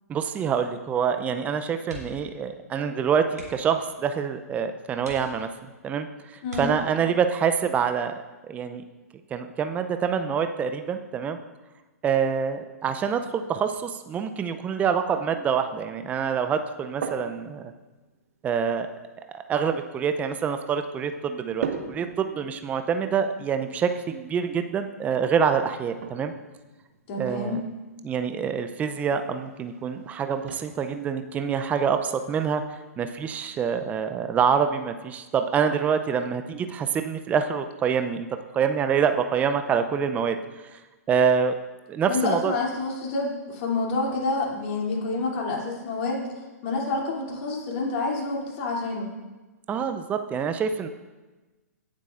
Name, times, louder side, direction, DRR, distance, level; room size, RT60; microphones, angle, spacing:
voice 1, 0.1-5.5 5.8-6.1 6.6-8.1 8.5-8.8 9.3-11.4 12.0-17.6 18.4-18.9 19.3-26.3 27.2-27.6 28.0-32.6 33.0-40.4 40.7-40.8 41.1-41.6 41.9-42.5 49.7-50.9, right 7 dB, 15° right, 8 dB, 0.5 m, -26 dB
sound 1, 1.8-2.4 2.6-2.8 3.3-3.8 4.4-4.5 5.0-5.7 6.4-7.2 8.8-9.1 9.5-9.6, right 1 dB, 85° right, 3.0 m, -43 dB
sound 2, 16.6-34.6, right 6 dB, 60° right, 1.3 m, -43 dB
voice 2, 27.1-27.6 42.1-49.1, left 3 dB, 45° left, -2 dB, 2.9 m, -28 dB
17.0 x 7.5 x 2.5 m, 1.2 s
figure-of-eight pair, 115°, 9 cm